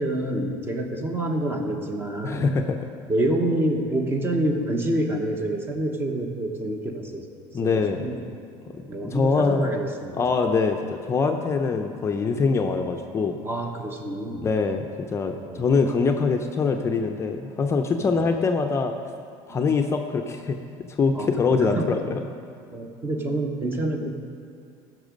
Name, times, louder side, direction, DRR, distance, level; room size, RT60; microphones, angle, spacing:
voice 1, 0.0-2.5 3.1-7.3 7.6-8.3 8.9-10.2 13.4-14.5 15.4-15.7 18.0-18.2 21.1-21.9 22.7-24.1, right 1 dB, 20° right, 4 dB, 1.1 m, -27 dB
voice 2, 2.2-2.8 7.5-8.1 8.7-9.7 10.2-13.4 14.4-18.9 19.5-20.6 20.9-22.2, left 4 dB, 25° left, 4 dB, 0.5 m, -24 dB
14.0 x 6.0 x 5.2 m, 2.4 s
cardioid pair, 135°, 11 cm